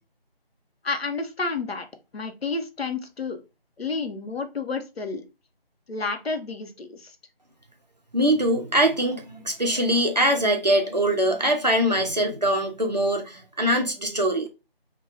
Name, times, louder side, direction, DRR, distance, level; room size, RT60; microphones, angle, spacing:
voice 1, 0.8-1.9 2.1-3.4 3.8-5.2 5.9-7.2, left 4 dB, 80° left, 0.7 m, -30 dB
voice 2, 8.1-14.5, right 1 dB, 45° right, 0.5 m, -23 dB
3.2 x 2.2 x 2.6 m
figure-of-eight pair, 175°, 30 cm